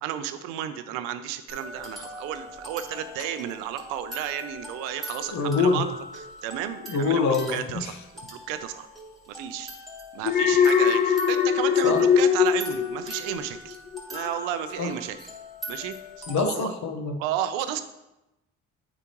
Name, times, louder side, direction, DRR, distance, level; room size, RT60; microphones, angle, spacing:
voice 1, 0.0-5.9 6.1-7.9 8.3-8.9 9.3-9.7 10.1-13.8 14.1-15.2 15.7-15.9 16.4-16.7 17.2-17.8, right 11 dB, 90° right, 10 dB, 0.6 m, -32 dB
sound 1, 1.5-16.4, left 1 dB, ahead, 2.2 m, -41 dB
voice 2, 5.3-5.8 6.9-7.9 11.8-12.0 14.8-14.9 16.3-17.2, left 4 dB, 60° left, 5 dB, 1.1 m, -25 dB
Alarm, 10.2-13.6 13.9-14.3, left 7 dB, 30° left, 0.5 m, -21 dB
8.5 x 4.9 x 3.0 m, 0.94 s
supercardioid pair, 65°, 33 cm